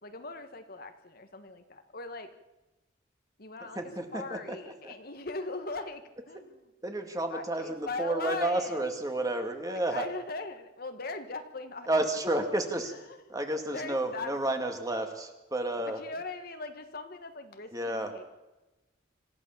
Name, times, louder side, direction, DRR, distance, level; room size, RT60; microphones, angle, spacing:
voice 1, 0.0-2.3 3.4-3.8 4.1-6.5 7.3-8.8 9.6-11.9 13.7-14.4 15.9-18.2, left 3 dB, 50° left, 7 dB, 1.5 m, -39 dB
voice 2, 3.6-4.9 6.8-10.1 11.9-12.9 13.3-16.0 17.7-18.1, right 1 dB, 20° right, 5 dB, 2.2 m, -31 dB
26.5 x 15.0 x 7.3 m, 1.0 s
head